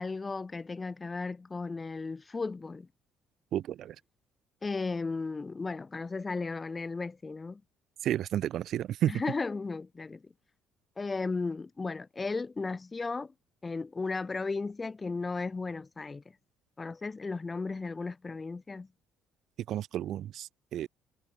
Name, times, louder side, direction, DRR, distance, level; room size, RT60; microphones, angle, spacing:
voice 1, 0.0-2.9 4.6-7.6 9.1-10.3 11.0-13.3 13.6-16.2 16.8-18.9, left 4 dB, 25° left, 1.9 m, -35 dB
voice 2, 3.5-4.0 8.0-9.1 19.7-20.9, right 11 dB, 55° right, 1.1 m, -31 dB
figure-of-eight pair, 50°, 0 cm